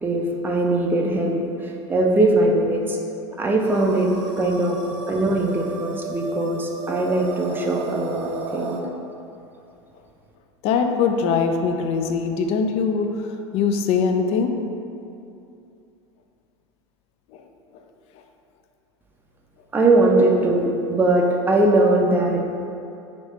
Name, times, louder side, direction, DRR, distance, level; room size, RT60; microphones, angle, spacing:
voice 1, 0.0-3.0 3.4-4.1 4.4-4.8 5.1-8.8 19.7-22.4, right 2 dB, 15° right, 0 dB, 0.5 m, -20 dB
sound 1, 3.6-8.8, right 4 dB, 75° right, 0.5 m, -34 dB
voice 2, 10.6-13.3 13.5-14.5 17.3-17.4, left 5 dB, 45° left, 5 dB, 0.4 m, -22 dB
3.2 x 2.8 x 4.1 m, 2.7 s
hypercardioid pair, 85°, 15 cm